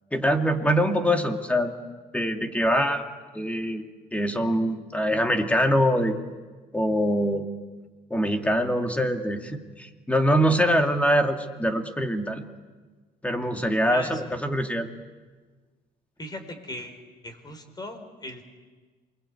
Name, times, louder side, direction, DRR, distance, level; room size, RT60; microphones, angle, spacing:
voice 1, 0.1-1.7 2.1-3.0 3.3-3.8 4.1-6.2 6.7-7.5 8.1-12.4 13.2-14.9, equal, 10° left, 5 dB, 2.2 m, -24 dB
voice 2, 13.9-14.2 16.2-18.4, left 1 dB, 25° left, 7 dB, 4.5 m, -38 dB
27.5 x 22.5 x 8.5 m, 1.4 s
cardioid pair, 110°, 17 cm